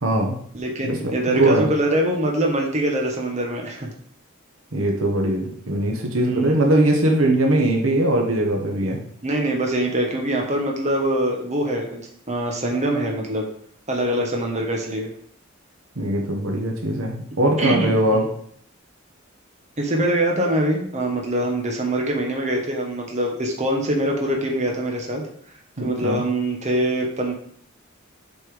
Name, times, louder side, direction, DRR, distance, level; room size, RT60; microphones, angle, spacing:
voice 1, 0.0-0.4 0.8-1.7 4.7-9.0 16.0-18.3 25.8-26.2, right 1 dB, 70° right, 1 dB, 1.3 m, -21 dB
voice 2, 0.5-3.9 6.2-6.6 7.3-7.4 9.2-13.4 13.9-15.1 17.6-18.3 19.8-25.2 25.8-27.3, right 1 dB, 35° right, 0 dB, 1.5 m, -24 dB
8.1 x 4.4 x 5.1 m, 0.63 s
head